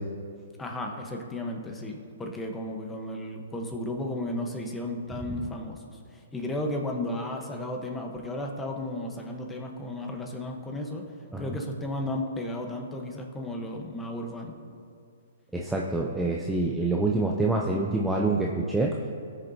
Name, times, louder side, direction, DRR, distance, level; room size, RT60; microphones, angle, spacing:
voice 1, 0.6-11.0 11.4-14.5, left 1 dB, 10° left, 2 dB, 1.3 m, -34 dB
voice 2, 15.5-19.0, right 2 dB, 5° right, -1 dB, 0.7 m, -26 dB
18.5 x 6.6 x 2.9 m, 2.4 s
hypercardioid pair, 130°, 0 cm